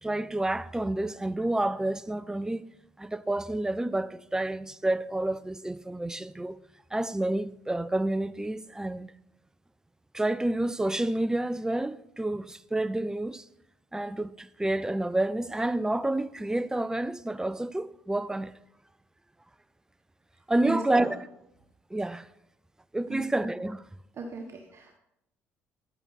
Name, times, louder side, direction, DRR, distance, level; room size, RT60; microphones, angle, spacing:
voice 1, 0.0-2.6 3.0-6.6 6.9-9.1 10.1-13.4 13.9-18.5 20.5-21.3 21.9-22.3 22.9-23.8, right 1 dB, 10° right, 0.4 m, -29 dB
voice 2, 20.6-21.1 23.1-23.3 24.2-25.0, right 3 dB, 40° right, 1.3 m, -36 dB
10.5 x 8.7 x 4.2 m
hypercardioid pair, 55°, 7 cm